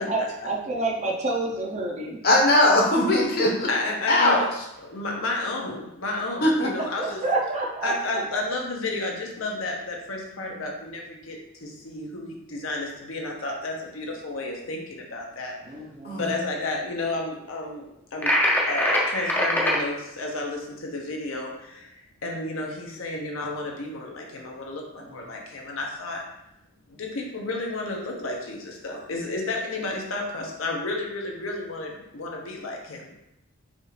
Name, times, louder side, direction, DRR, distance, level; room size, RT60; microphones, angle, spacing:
voice 1, 0.1-2.2 7.0-8.2 15.6-16.2 25.0-25.1 28.9-29.0, right 2 dB, 35° right, -1 dB, 0.6 m, -28 dB
voice 2, 2.2-3.7 4.1-4.4 6.4-6.7 16.0-16.2, left 1 dB, 50° left, -2 dB, 1.0 m, -19 dB
voice 3, 3.7-4.4 4.8-7.2 7.8-15.5 16.1-18.4 18.7-21.9 22.2-26.2 26.9-33.1, left 2 dB, 75° left, 0 dB, 0.8 m, -32 dB
sound 1, 18.2-19.8, left 1 dB, 10° left, 0.5 m, -22 dB
5.3 x 2.4 x 3.2 m, 0.87 s
head